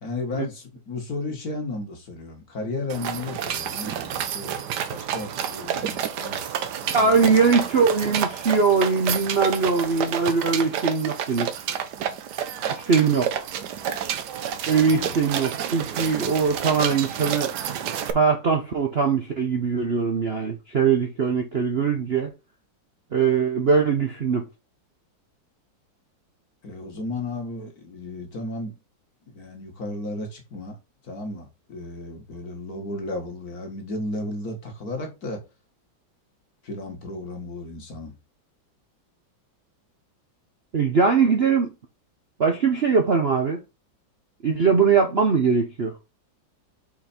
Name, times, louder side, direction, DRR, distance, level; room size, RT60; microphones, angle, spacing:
voice 1, 0.0-4.6 4.9-6.5 6.8-7.3 14.8-15.2 26.6-28.8 29.3-30.8 31.0-35.4 36.6-38.1, left 2 dB, 50° left, 2.2 m, -34 dB
sound 1, 2.9-18.1, right 9 dB, 65° right, 1.3 m, -29 dB
voice 2, 6.9-11.5 12.8-13.5 14.7-17.5 18.1-22.3 23.1-24.4 40.7-41.7 42.4-43.6 44.4-46.0, right 5 dB, 45° right, 0.8 m, -21 dB
5.9 x 4.4 x 4.3 m
omnidirectional pair, 2.0 m